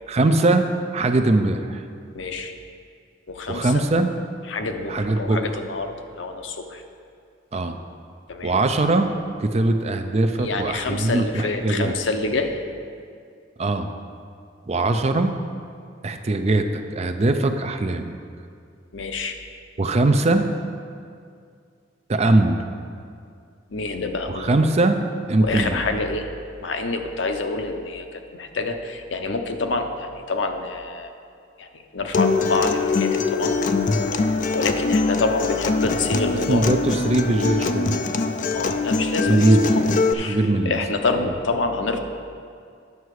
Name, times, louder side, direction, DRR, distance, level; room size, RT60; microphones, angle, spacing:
voice 1, 0.1-0.7 0.9-1.8 3.5-4.1 4.9-5.4 7.5-7.8 8.4-9.1 9.4-12.0 13.6-13.9 14.7-15.4 16.0-18.1 19.8-20.5 22.1-22.6 24.3-25.8 36.5-38.0 39.3-39.6 40.3-40.8, right 2 dB, 35° right, 7 dB, 0.5 m, -21 dB
voice 2, 2.1-2.5 3.3-3.8 4.5-6.8 8.3-8.5 10.4-12.5 18.9-19.4 23.7-24.5 25.4-26.3 26.6-31.1 31.6-33.5 34.1-36.7 38.5-39.4 39.8-39.9 40.1-42.0, left 3 dB, 80° left, 6 dB, 0.7 m, -27 dB
Acoustic guitar, 32.1-40.1, left 4 dB, 45° left, 0.4 m, -23 dB
9.5 x 6.7 x 4.8 m, 2.3 s
head